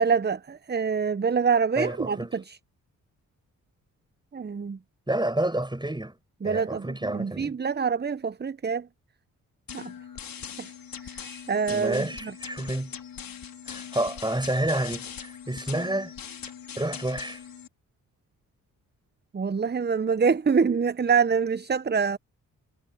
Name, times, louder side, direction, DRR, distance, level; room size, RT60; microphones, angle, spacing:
voice 1, 0.0-2.6 4.3-4.8 6.4-8.9 9.7-9.9 10.6-10.7 11.0-12.3 19.3-22.2, right 6 dB, 25° right, 0.9 m, -26 dB
voice 2, 1.8-2.3 5.1-6.2 6.4-7.6 11.7-12.9 13.7-16.1 16.8-17.4, right 1 dB, 10° right, 6.1 m, -29 dB
sound 1, 9.7-17.7, left 8 dB, 65° left, 5.4 m, -41 dB
supercardioid pair, 45°, 37 cm